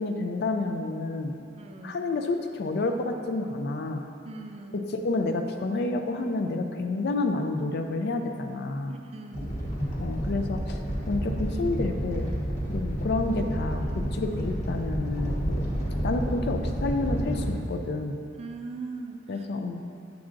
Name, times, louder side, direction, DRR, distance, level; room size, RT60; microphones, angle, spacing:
voice 1, 0.0-1.3 1.8-4.0 4.7-8.9 10.0-10.8 11.1-12.3 12.7-15.7 16.0-18.1 19.3-19.8, left 2 dB, 60° left, 5 dB, 0.4 m, -29 dB
voice 2, 1.6-2.0 4.3-4.8 8.9-9.5 18.4-19.2, right 3 dB, 35° right, 5 dB, 0.3 m, -39 dB
Animal, 9.3-17.5, equal, 40° left, 1.0 m, -30 dB
7.2 x 5.9 x 2.5 m, 2.4 s
head